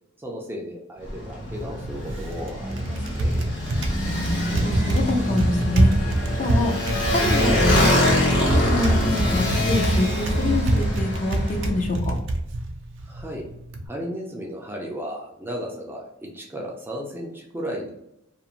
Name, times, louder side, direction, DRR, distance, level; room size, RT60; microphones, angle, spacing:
voice 1, 0.2-3.6 6.5-6.7 13.1-13.5 13.9-17.9, equal, 10° right, -1 dB, 0.4 m, -35 dB
Motorcycle, 1.0-11.7, left 1 dB, 60° left, 1.2 m, -25 dB
Typing, 1.4-13.9, right 1 dB, 70° right, 0.4 m, -25 dB
voice 2, 4.1-5.9 6.4-6.7 7.1-12.1, left 2 dB, 40° left, 1 dB, 0.5 m, -26 dB
2.5 x 2.4 x 2.9 m, 0.81 s
head